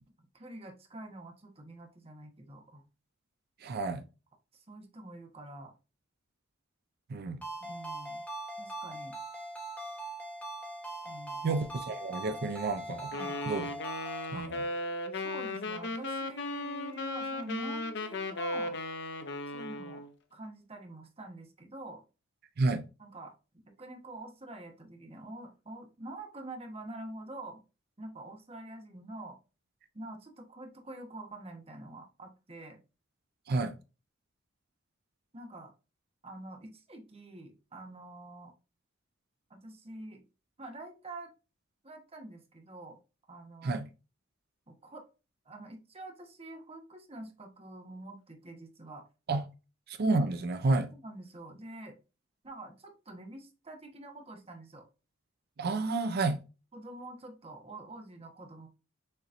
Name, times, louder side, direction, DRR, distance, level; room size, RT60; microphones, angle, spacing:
voice 1, 0.3-2.8 4.5-5.7 7.7-8.3 8.6-9.2 11.0-11.5 13.1-13.4 14.3-14.5 15.1-18.8 19.5-20.0 20.3-22.0 23.0-23.3 23.8-27.6 28.0-29.4 29.9-32.8 35.3-35.7 36.2-38.5 39.5-40.2 40.6-41.3 41.8-43.0 43.3-43.8 44.7-45.0 45.4-49.0 50.9-52.0 52.4-54.8 56.7-58.7, right 2 dB, 30° right, 1.1 m, -46 dB
voice 2, 3.6-4.0 7.1-7.4 11.4-13.1 13.5-13.7 14.3-14.6 22.6-22.8 33.5-33.7 43.6-43.9 49.3-49.4 49.9-50.9 55.6-56.4, right 3 dB, 55° right, 0.5 m, -30 dB
Ringtone, 7.4-14.3, right 2 dB, 10° left, 1.2 m, -41 dB
Wind instrument woodwind instrument, 13.1-20.1, left 2 dB, 60° left, 0.7 m, -36 dB
6.6 x 3.0 x 2.6 m
head